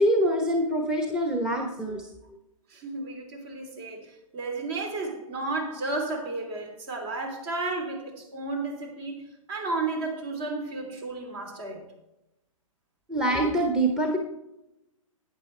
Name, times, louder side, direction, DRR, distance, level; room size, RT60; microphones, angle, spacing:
voice 1, 0.0-2.1 13.1-14.2, right 1 dB, 5° right, 1.1 m, -24 dB
voice 2, 2.7-9.2 9.5-11.9, right 3 dB, 45° right, 3.2 m, -33 dB
12.0 x 9.4 x 3.3 m
hypercardioid pair, 125°, 18 cm